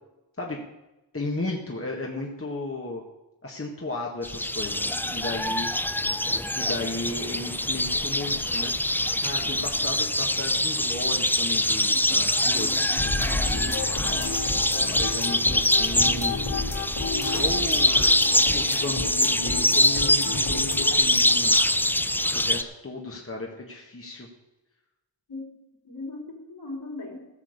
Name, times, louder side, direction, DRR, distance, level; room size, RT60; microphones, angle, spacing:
voice 1, 1.1-3.0 3.4-5.7 6.5-8.7 9.2-13.0 14.0-16.3 17.2-18.2 18.5-21.6 22.3-24.3, left 2 dB, 30° left, -1 dB, 1.7 m, -34 dB
sound 1, 4.2-22.6, left 1 dB, 5° left, 0.5 m, -24 dB
voice 2, 11.9-13.8 25.3-25.5 25.8-27.3, left 2 dB, 60° left, -2 dB, 4.3 m, -39 dB
sound 2, 13.0-21.0, left 3 dB, 80° left, 3.8 m, -31 dB
16.0 x 6.5 x 6.6 m, 1.0 s
wide cardioid pair, 65°, 45 cm